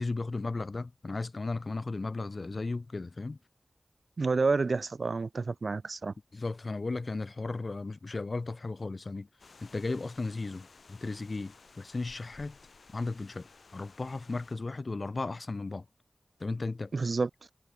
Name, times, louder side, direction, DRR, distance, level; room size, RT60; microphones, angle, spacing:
voice 1, 0.0-3.4 6.3-9.3 9.6-12.6 12.9-13.5 13.7-15.8 16.4-16.9, left 3 dB, 50° left, 0.8 m, -35 dB
voice 2, 4.2-6.1 16.9-17.3, right 4 dB, 65° right, 0.6 m, -29 dB
outside wind, 9.4-14.6, left 4 dB, 70° left, 5.9 m, -56 dB
wide cardioid pair, 95°, 0 cm